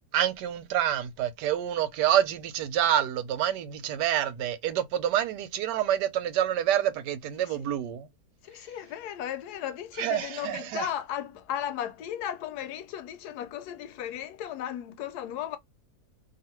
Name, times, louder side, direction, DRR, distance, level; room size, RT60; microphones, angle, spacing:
voice 1, 0.1-8.1 10.0-10.9, right 11 dB, 90° right, 1.2 m, -27 dB
voice 2, 8.4-15.6, left 10 dB, 75° left, 1.1 m, -35 dB
2.7 x 2.4 x 2.8 m
omnidirectional pair, 1.7 m